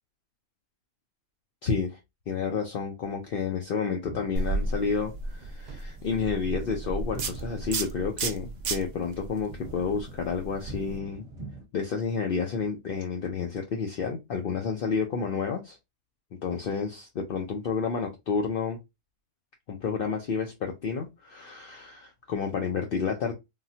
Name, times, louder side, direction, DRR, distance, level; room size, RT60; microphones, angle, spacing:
voice 1, 1.6-2.0 2.3-11.2 11.7-15.8 16.4-18.8 19.7-23.3, left 5 dB, 60° left, 0.6 m, -30 dB
sound 1, 4.0-11.6, right 1 dB, 25° right, 1.0 m, -45 dB
sound 2, 4.3-11.0, right 3 dB, 75° right, 0.4 m, -34 dB
3.7 x 2.2 x 2.6 m
omnidirectional pair, 1.5 m